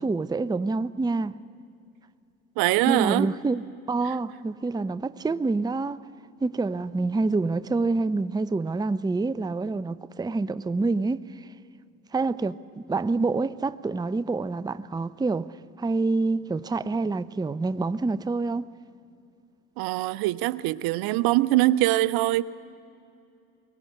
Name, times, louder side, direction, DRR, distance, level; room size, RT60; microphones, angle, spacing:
voice 1, 0.0-1.4 2.9-6.1 6.4-11.5 12.1-18.6, right 3 dB, 10° right, 0.7 m, -27 dB
voice 2, 2.6-3.3 19.8-22.4, right 17 dB, 55° right, 0.8 m, -23 dB
23.0 x 20.0 x 9.6 m
figure-of-eight pair, 50°, 42 cm